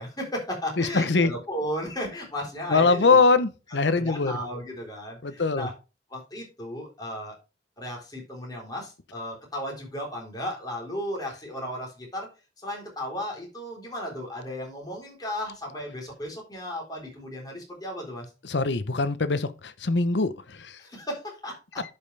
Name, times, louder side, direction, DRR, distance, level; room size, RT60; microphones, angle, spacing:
voice 1, 0.0-3.2 4.0-5.7 6.1-7.4 7.8-12.3 12.6-18.3 20.8-21.8, equal, 25° left, 3.7 m, -35 dB
voice 2, 0.8-1.3 2.7-4.3 5.2-5.7 18.4-20.8, left 4 dB, 80° left, 0.8 m, -22 dB
11.0 x 5.5 x 3.3 m
head